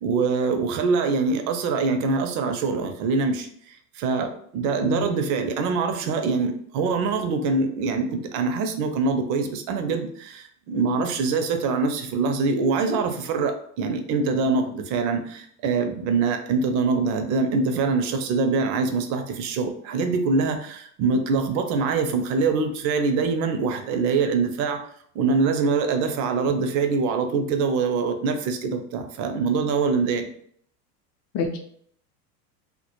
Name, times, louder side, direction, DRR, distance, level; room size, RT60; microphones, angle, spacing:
voice 1, 0.0-24.8 25.1-30.3, right 4 dB, 40° right, 6 dB, 0.4 m, -24 dB
voice 2, 4.8-5.1 31.3-31.6, left 4 dB, 35° left, 3 dB, 0.5 m, -27 dB
2.1 x 2.1 x 2.9 m, 0.63 s
hypercardioid pair, 90°, 47 cm